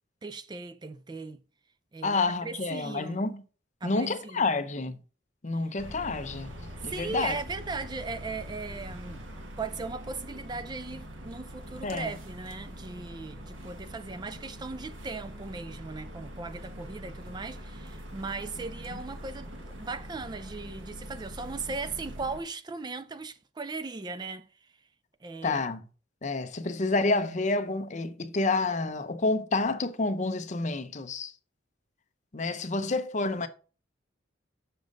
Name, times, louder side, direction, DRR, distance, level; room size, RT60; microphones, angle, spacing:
voice 1, 0.2-1.4 1.9-3.3 3.8-4.5 5.5-5.6 6.8-9.2 9.6-24.7 25.2-25.6, right 3 dB, 20° right, 0.4 m, -38 dB
voice 2, 2.0-3.4 3.8-5.0 5.4-6.5 6.8-7.3 11.8-12.1 25.4-25.8 26.2-31.3 32.3-33.5, left 3 dB, 40° left, 0.7 m, -29 dB
sound 1, 5.8-22.4, equal, 85° right, 1.5 m, -43 dB
6.8 x 6.4 x 3.9 m
head